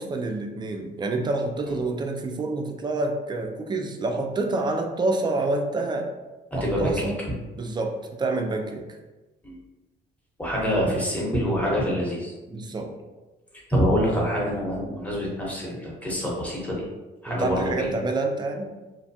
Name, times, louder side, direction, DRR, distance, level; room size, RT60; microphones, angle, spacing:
voice 1, 0.0-6.1 6.5-7.2 7.6-8.8 12.5-12.9 17.3-18.7, right 2 dB, 20° right, 3 dB, 0.4 m, -27 dB
voice 2, 6.5-7.1 9.4-9.6 10.4-12.3 13.7-16.9 17.2-17.9, equal, 5° left, -5 dB, 0.9 m, -25 dB
2.5 x 2.1 x 2.7 m, 1.2 s
cardioid pair, 90°, 20 cm